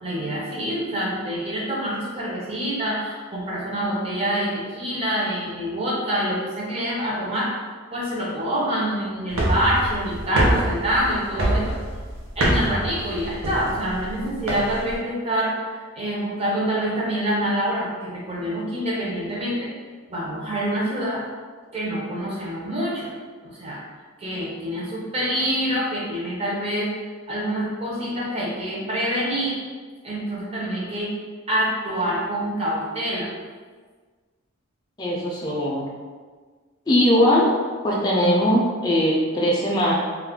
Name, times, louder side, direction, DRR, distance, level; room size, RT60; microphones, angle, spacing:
voice 1, 0.0-7.5 7.9-11.7 12.4-19.7 20.1-21.2 21.7-23.1 23.4-23.8 24.2-26.9 27.3-29.6 30.0-31.1 31.5-33.3, equal, 25° right, -6 dB, 0.6 m, -26 dB
sound 1, 9.3-15.0, right 1 dB, 70° right, 0.6 m, -25 dB
voice 2, 35.0-35.9 36.9-37.5 37.8-39.9, equal, 20° left, -4 dB, 0.3 m, -20 dB
2.4 x 2.2 x 3.5 m, 1.5 s
head